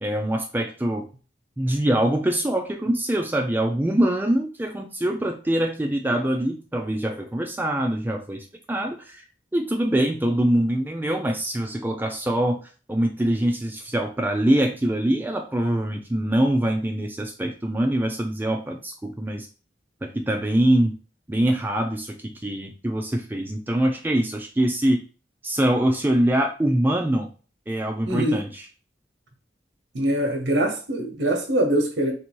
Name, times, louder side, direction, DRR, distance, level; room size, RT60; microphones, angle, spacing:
voice 1, 0.0-1.1 1.6-9.2 9.5-12.6 12.9-19.5 20.0-20.9 21.3-25.0 25.4-27.3 27.7-28.7, right 1 dB, 10° right, 0.4 m, -24 dB
voice 2, 28.1-28.4 29.9-32.1, right 1 dB, 85° right, 1.0 m, -23 dB
3.4 x 2.7 x 4.5 m
head